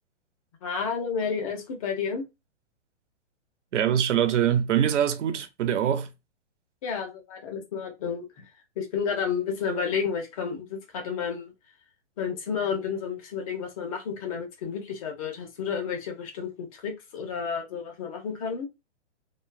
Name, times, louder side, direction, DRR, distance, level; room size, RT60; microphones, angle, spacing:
voice 1, 0.6-2.2 6.8-8.5 8.8-11.5 12.2-18.7, left 6 dB, 30° left, 0.7 m, -31 dB
voice 2, 3.7-6.1, right 9 dB, 90° right, 0.7 m, -23 dB
3.0 x 2.3 x 2.2 m
hypercardioid pair, 160°, 35 cm